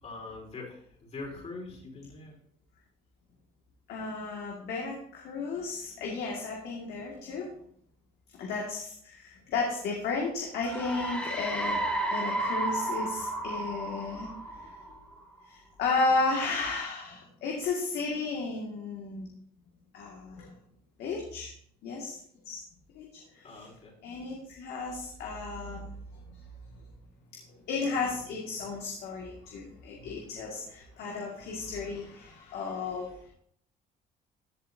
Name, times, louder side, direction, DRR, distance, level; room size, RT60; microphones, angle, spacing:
voice 1, 0.0-2.3 23.4-23.9, left 3 dB, 40° left, -1 dB, 4.3 m, -43 dB
voice 2, 3.9-7.5 8.3-11.8 12.1-15.0 15.5-19.3 19.9-20.5 21.0-21.5 21.8-22.2 22.5-22.6 22.9-23.1 23.3-23.7 24.0-26.4 26.7-26.8 27.7-33.1, left 3 dB, 75° left, -2 dB, 2.1 m, -34 dB
sound 1, 10.6-15.2, right 2 dB, 10° left, 2.3 m, -32 dB
15.0 x 8.0 x 2.8 m, 0.65 s
cardioid pair, 110°, 17 cm